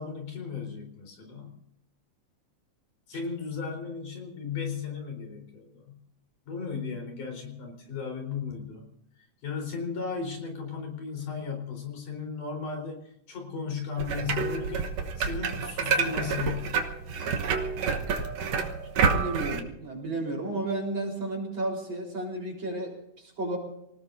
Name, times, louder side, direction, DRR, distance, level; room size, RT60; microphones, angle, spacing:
voice 1, 0.0-1.6 3.1-6.0 6.5-8.9 9.4-16.8, left 5 dB, 85° left, 2 dB, 5.6 m, -35 dB
sound 1, 14.0-19.6, right 5 dB, 60° right, 2.2 m, -28 dB
voice 2, 19.0-23.6, right 2 dB, 40° right, -1 dB, 4.8 m, -33 dB
27.5 x 19.0 x 2.7 m, 0.79 s
omnidirectional pair, 3.5 m